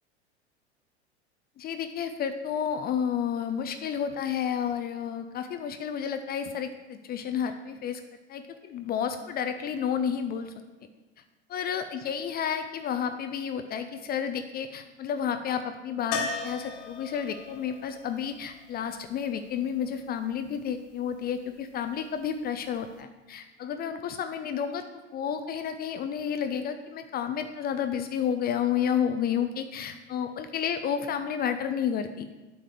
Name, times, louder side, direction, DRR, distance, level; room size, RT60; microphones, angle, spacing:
voice 1, 1.6-8.0 8.3-10.5 11.5-24.8 25.1-32.3, left 8 dB, 25° left, 8 dB, 0.6 m, -31 dB
sound 1, 16.1-20.0 22.7-22.8 23.0-23.1, left 4 dB, 50° left, 1.7 m, -37 dB
8.5 x 5.0 x 7.5 m, 1.2 s
figure-of-eight pair, 85°, 34 cm